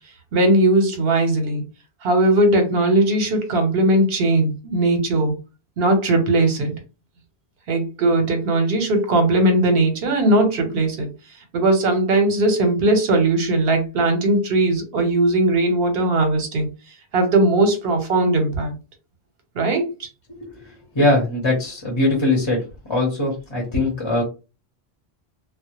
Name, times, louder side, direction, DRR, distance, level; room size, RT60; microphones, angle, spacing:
voice 1, 0.3-1.7 2.0-5.4 5.8-6.8 7.7-11.1 11.5-16.7 17.1-18.7 19.5-20.1, right 2 dB, 70° right, 0.9 m, -19 dB
voice 2, 20.9-22.6 22.9-24.2, left 2 dB, 30° left, 0.7 m, -20 dB
2.1 x 2.1 x 2.9 m
omnidirectional pair, 1.0 m